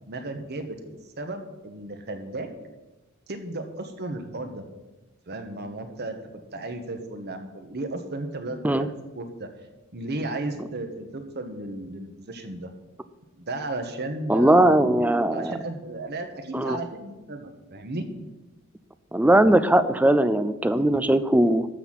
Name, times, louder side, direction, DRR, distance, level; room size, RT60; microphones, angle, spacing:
voice 1, 0.1-0.8 1.2-2.5 3.3-4.6 5.3-6.2 6.5-8.9 9.1-9.5 9.9-12.7 13.4-14.9 15.3-18.1, right 2 dB, 50° right, 6 dB, 1.3 m, -34 dB
voice 2, 14.3-15.5 16.5-16.8 19.1-21.7, right 1 dB, 5° right, 13 dB, 0.4 m, -19 dB
12.5 x 4.2 x 7.5 m, 1.1 s
head